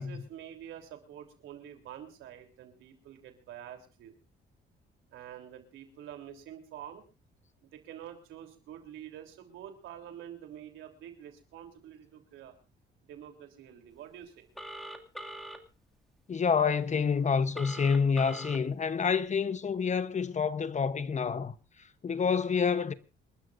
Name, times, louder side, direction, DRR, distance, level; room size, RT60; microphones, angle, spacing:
voice 1, 0.0-4.2 5.1-7.0 7.7-12.5 13.1-14.5, right 10 dB, 90° right, 3.4 m, -47 dB
Telephone, 14.6-15.6 17.5-18.6, right 1 dB, ahead, 2.3 m, -42 dB
voice 2, 16.3-21.5 22.0-22.9, left 6 dB, 35° left, 1.0 m, -28 dB
28.0 x 12.5 x 2.6 m
cardioid pair, 90°, 20 cm